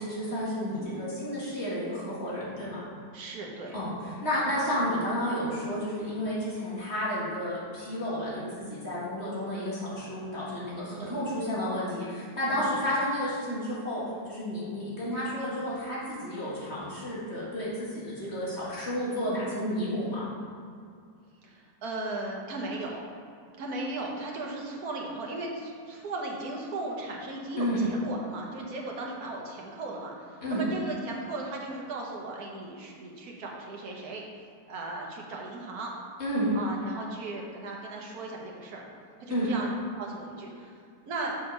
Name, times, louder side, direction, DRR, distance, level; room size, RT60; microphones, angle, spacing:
voice 1, 0.0-2.9 3.7-3.9 4.2-20.3 27.6-27.8 30.4-30.6 36.2-36.5 39.3-39.5, equal, 40° left, -8 dB, 2.2 m, -31 dB
voice 2, 0.7-1.0 3.1-3.8 10.9-11.2 12.5-12.9 21.4-23.0 23.6-34.2 34.7-35.9 36.5-38.9 39.2-39.7 40.0-40.8 41.0-41.4, right 2 dB, 65° right, -1 dB, 1.6 m, -37 dB
6.4 x 5.2 x 5.4 m, 2.3 s
omnidirectional pair, 1.8 m